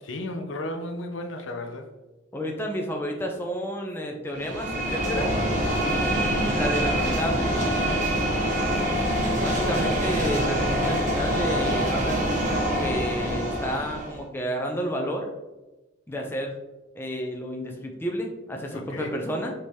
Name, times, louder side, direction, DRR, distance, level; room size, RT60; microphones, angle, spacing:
voice 1, 0.0-1.9 18.7-19.2, left 1 dB, 65° left, 5 dB, 0.5 m, -34 dB
voice 2, 2.3-5.3 5.8-7.6 9.4-15.3 16.1-16.5 17.0-19.5, equal, 10° left, 1 dB, 0.4 m, -31 dB
sound 1, 4.3-14.2, equal, 40° right, 0.9 m, -25 dB
5.3 x 2.8 x 3.2 m, 1.1 s
head